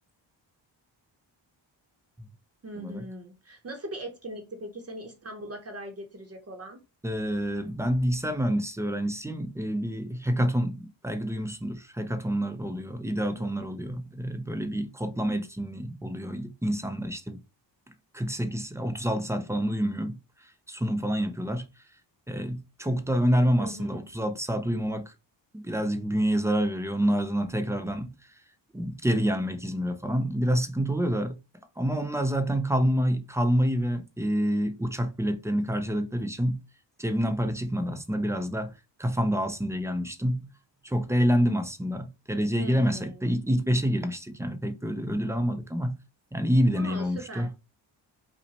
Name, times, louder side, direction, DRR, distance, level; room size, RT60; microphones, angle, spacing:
voice 1, 2.6-6.8 13.4-13.8 23.6-24.1 42.5-43.2 46.8-47.5, right 1 dB, 30° right, 0.7 m, -40 dB
voice 2, 7.0-17.4 18.1-20.2 20.4-21.7 22.3-25.1 25.5-28.1 28.7-31.4 31.8-36.6 37.0-38.7 39.0-40.5 40.8-46.0 46.3-47.5, equal, 5° right, 0.4 m, -27 dB
5.6 x 2.1 x 4.0 m
wide cardioid pair, 170°, 45 cm